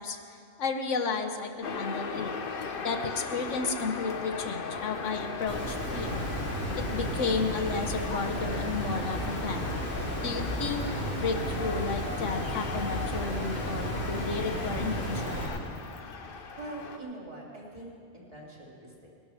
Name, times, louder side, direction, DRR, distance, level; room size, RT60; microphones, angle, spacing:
voice 1, 0.0-2.3 2.8-6.2 6.8-9.7 10.2-10.9 11.2-15.5, left 4 dB, 75° left, 6 dB, 1.2 m, -33 dB
sound 1, 1.6-17.0, left 5 dB, 50° left, 0.9 m, -37 dB
Water, 5.5-15.5, right 1 dB, 75° right, 3.7 m, -34 dB
voice 2, 16.6-19.1, right 2 dB, 30° right, -4 dB, 3.1 m, -43 dB
19.5 x 12.0 x 4.9 m, 2.3 s
omnidirectional pair, 1.3 m